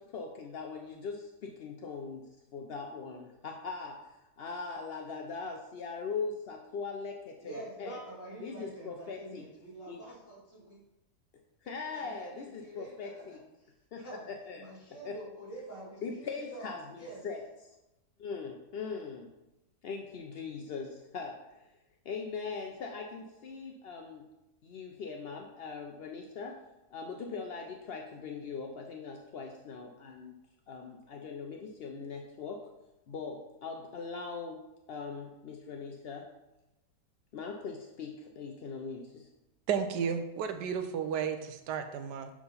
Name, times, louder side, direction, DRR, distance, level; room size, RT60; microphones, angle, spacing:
voice 1, 0.0-2.3 2.5-4.1 4.4-8.0 8.4-9.4 9.9-10.0 11.6-13.4 13.9-14.7 15.0-15.2 16.0-17.4 17.7-17.8 18.2-19.3 19.8-21.6 22.0-24.2 24.6-26.6 26.9-30.3 30.7-32.6 33.1-34.6 34.9-36.3 37.3-39.3, left 5 dB, 70° left, 2 dB, 0.5 m, -40 dB
voice 2, 7.4-10.8 11.9-14.3 14.6-16.7 17.0-17.2, right 2 dB, 45° left, -6 dB, 2.7 m, -47 dB
voice 3, 39.7-42.3, right 7 dB, 90° right, 8 dB, 1.3 m, -33 dB
7.2 x 3.7 x 5.6 m, 0.95 s
omnidirectional pair, 1.8 m